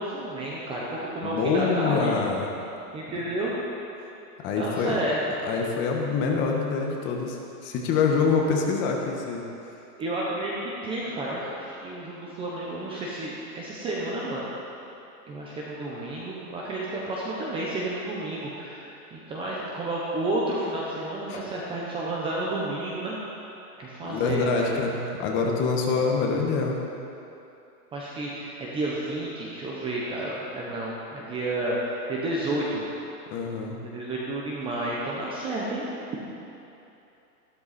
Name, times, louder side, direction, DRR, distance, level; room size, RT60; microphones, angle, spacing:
voice 1, 0.0-2.1 2.9-3.5 4.6-5.2 10.0-14.5 15.3-23.5 23.8-24.7 27.9-32.8 33.8-35.9, right 1 dB, 10° right, -5 dB, 0.8 m, -31 dB
voice 2, 1.2-2.5 4.4-5.0 5.4-9.5 21.3-21.4 24.0-26.8 33.3-33.8, left 4 dB, 25° left, 0 dB, 1.2 m, -25 dB
14.0 x 12.5 x 4.2 m, 2.8 s
hypercardioid pair, 155°, 48 cm